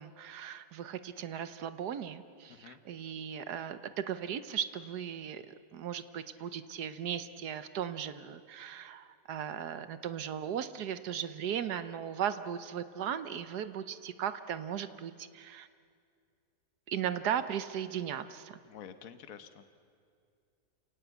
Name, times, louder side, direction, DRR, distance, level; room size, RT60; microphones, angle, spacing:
voice 1, 0.0-15.7 16.9-18.6, right 9 dB, 75° right, 12 dB, 1.4 m, -37 dB
voice 2, 2.5-2.8 18.7-19.6, left 8 dB, 60° left, 9 dB, 1.4 m, -49 dB
28.0 x 18.0 x 8.2 m, 2.3 s
omnidirectional pair, 1.8 m